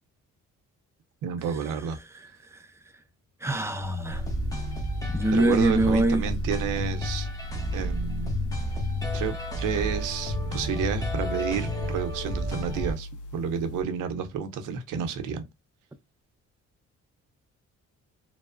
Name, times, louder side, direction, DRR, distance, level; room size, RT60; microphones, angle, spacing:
voice 1, 1.2-2.0 5.3-7.3 7.7-8.4 9.1-15.4, right 7 dB, 85° right, 0.6 m, -30 dB
voice 2, 3.4-4.2 5.1-6.2, right 1 dB, 10° right, 0.4 m, -23 dB
sound 1, 3.8-13.8, left 1 dB, 80° left, 0.4 m, -41 dB
sound 2, 4.1-12.9, left 1 dB, 10° left, 0.9 m, -31 dB
2.9 x 2.0 x 2.4 m
cardioid pair, 90°, 30 cm